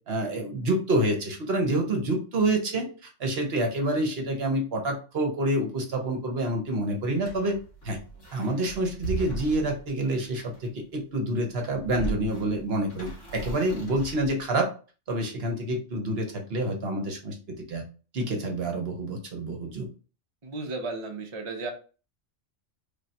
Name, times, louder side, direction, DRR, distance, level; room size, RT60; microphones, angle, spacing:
voice 1, 0.1-7.6 7.8-8.0 8.3-14.7 15.1-17.8 18.1-19.9, right 1 dB, 60° right, 3 dB, 1.0 m, -28 dB
sound 1, 7.2-10.8 11.5-14.6, right 4 dB, 80° left, 1.7 m, -38 dB
voice 2, 20.4-21.7, right 3 dB, 35° right, 1 dB, 0.6 m, -34 dB
3.4 x 2.3 x 4.0 m, 0.36 s
omnidirectional pair, 1.2 m